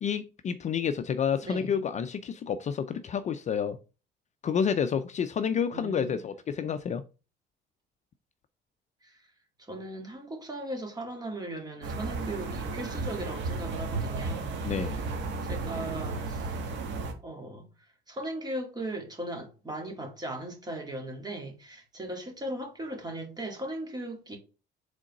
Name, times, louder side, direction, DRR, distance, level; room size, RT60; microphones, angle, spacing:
voice 1, 0.0-3.8 4.4-7.0 14.6-15.0, left 7 dB, 35° left, 0.5 m, -29 dB
voice 2, 1.4-1.8 5.7-6.2 9.0-9.1 9.7-14.6 15.4-16.6 17.2-17.7 18.1-24.4, right 1 dB, 20° right, 2.0 m, -38 dB
sound 1, 11.8-17.1, right 3 dB, 70° right, 1.6 m, -33 dB
5.0 x 3.9 x 5.3 m
cardioid pair, 130°, 20 cm